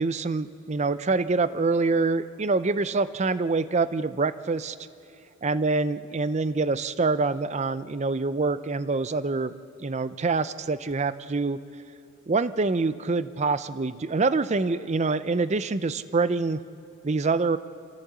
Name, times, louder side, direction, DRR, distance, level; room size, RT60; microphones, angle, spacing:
voice 1, 0.0-4.8 5.4-9.5 9.8-11.6 12.3-16.6 17.0-17.6, right 3 dB, 30° right, 14 dB, 0.5 m, -25 dB
27.5 x 14.5 x 8.1 m, 2.6 s
head